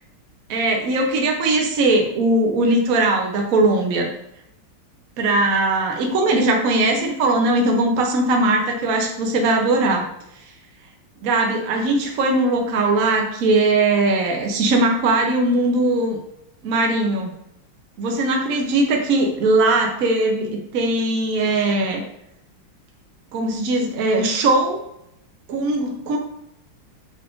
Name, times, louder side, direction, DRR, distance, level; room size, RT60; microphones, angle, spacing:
voice 1, 0.5-4.1 5.2-10.1 11.2-16.2 16.6-17.3 18.0-22.0 23.3-24.8 25.5-26.2, right 2 dB, 70° right, 1 dB, 0.8 m, -20 dB
5.9 x 2.4 x 3.5 m, 0.82 s
omnidirectional pair, 2.2 m